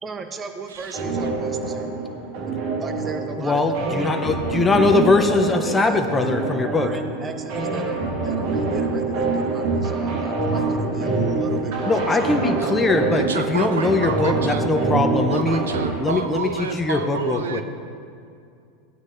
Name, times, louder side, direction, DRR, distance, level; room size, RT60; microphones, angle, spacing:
voice 1, 0.0-1.9 2.5-3.6 5.6-6.3 6.6-12.5, right 4 dB, 25° right, 6 dB, 1.0 m, -36 dB
voice 2, 0.7-1.0 13.2-14.6 15.3-17.6, right 6 dB, 80° right, 8 dB, 0.5 m, -29 dB
sound 1, 0.9-15.9, right 3 dB, 55° right, 1.9 m, -25 dB
voice 3, 3.4-6.9 11.9-15.6 16.0-17.6, left 3 dB, 15° left, 5 dB, 0.8 m, -21 dB
16.5 x 9.4 x 2.6 m, 2.4 s
hypercardioid pair, 90°, 0 cm